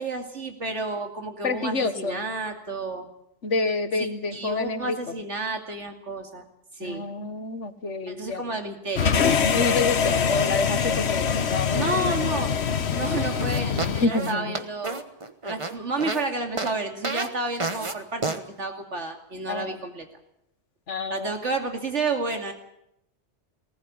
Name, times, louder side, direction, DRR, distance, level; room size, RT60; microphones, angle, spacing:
voice 1, 0.0-3.1 4.0-6.4 6.7-7.1 8.1-9.2 11.7-12.5 12.9-15.0 15.4-20.1 21.1-22.5, right 3 dB, 80° right, 4 dB, 2.8 m, -31 dB
voice 2, 1.4-2.2 3.4-5.0 6.8-8.5 9.5-12.1 14.0-14.5 19.5-19.7 20.9-21.3, left 3 dB, 85° left, 9 dB, 1.9 m, -28 dB
sound 1, 9.0-14.1, left 6 dB, 65° left, 1.3 m, -24 dB
sound 2, 13.4-16.2 16.6-16.7 17.0-17.3 17.6-17.9 18.2-18.4, right 3 dB, 25° right, 1.3 m, -30 dB
19.0 x 18.5 x 8.6 m, 0.80 s
omnidirectional pair, 1.2 m